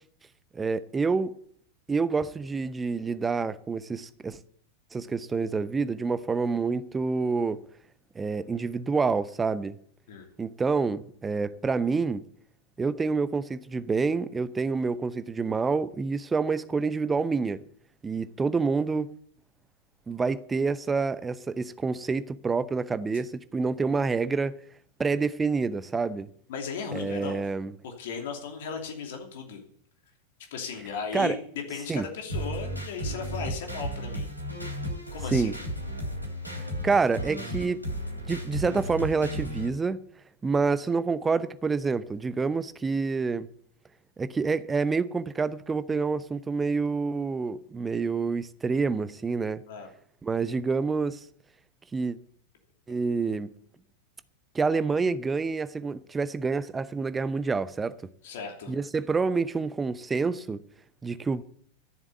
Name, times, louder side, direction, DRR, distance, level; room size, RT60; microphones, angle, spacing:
voice 1, 0.5-1.3 1.9-4.4 4.9-7.6 8.1-9.8 10.4-12.2 12.8-17.6 18.0-19.1 20.1-24.6 25.0-26.3 26.9-27.7 31.1-31.4 31.9-32.0 35.3-35.5 36.8-37.8 38.3-40.0 40.4-43.5 44.2-49.6 50.2-51.2 51.9-52.2 52.9-53.5 54.5-58.0 58.7-60.6 61.0-61.4, right 4 dB, 15° right, 0.7 m, -27 dB
voice 2, 26.5-27.4 27.8-29.6 30.5-31.3 31.7-34.3 35.1-35.5 49.7-49.9 54.9-55.0 58.2-58.7, left 6 dB, 55° left, 2.8 m, -36 dB
sound 1, 32.3-39.7, equal, 90° right, 2.8 m, -34 dB
13.5 x 7.3 x 8.2 m
figure-of-eight pair, 90°, 0 cm